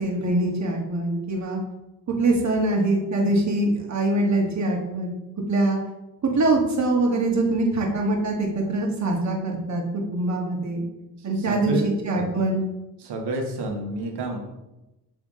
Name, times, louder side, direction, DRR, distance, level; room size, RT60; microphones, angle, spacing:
voice 1, 0.0-1.6 2.2-5.1 5.5-5.8 6.2-10.8 11.2-12.6, right 2 dB, 45° right, 0 dB, 1.5 m, -23 dB
voice 2, 11.2-11.8 12.1-12.3 13.0-14.4, right 3 dB, 75° right, 2 dB, 1.3 m, -29 dB
7.4 x 3.5 x 3.6 m, 0.97 s
cardioid pair, 95°, 40 cm